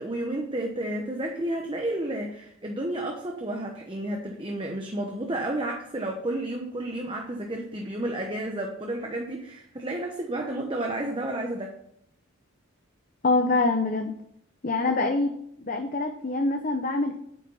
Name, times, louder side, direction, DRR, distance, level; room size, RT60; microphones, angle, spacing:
voice 1, 0.0-11.7, right 1 dB, 25° right, 1 dB, 1.0 m, -31 dB
voice 2, 13.2-14.1 14.6-17.2, left 3 dB, 40° left, 5 dB, 0.8 m, -25 dB
9.2 x 8.9 x 5.6 m, 0.71 s
head